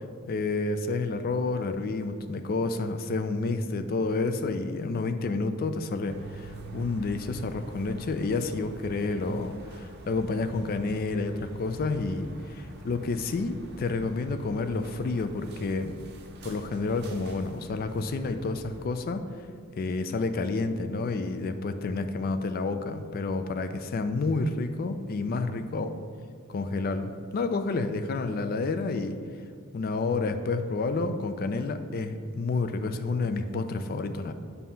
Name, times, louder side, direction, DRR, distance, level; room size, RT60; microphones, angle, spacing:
voice 1, 0.3-15.9 16.4-19.3 19.8-25.9 26.5-29.2 29.7-34.3, left 3 dB, 45° left, 9 dB, 0.3 m, -29 dB
sound 1, 6.1-18.9, right 2 dB, 50° right, 0.6 m, -46 dB
7.3 x 2.8 x 5.6 m, 2.2 s
head